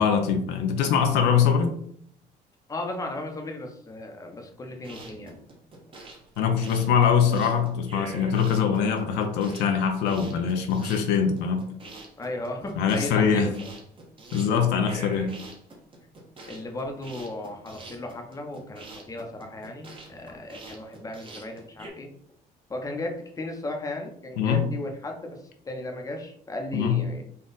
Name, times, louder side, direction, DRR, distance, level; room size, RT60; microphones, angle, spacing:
voice 1, 0.0-1.8 6.4-11.6 12.8-13.5 14.3-15.3 24.4-24.7 26.7-27.0, left 7 dB, 90° left, 5 dB, 0.6 m, -23 dB
voice 2, 2.7-5.4 12.2-13.7 16.5-22.1 22.7-25.4 25.6-27.2, left 1 dB, 20° left, 2 dB, 0.8 m, -35 dB
sound 1, 4.7-21.9, right 2 dB, 30° right, 1.2 m, -45 dB
4.0 x 2.3 x 3.9 m, 0.64 s
cardioid pair, 110°, 17 cm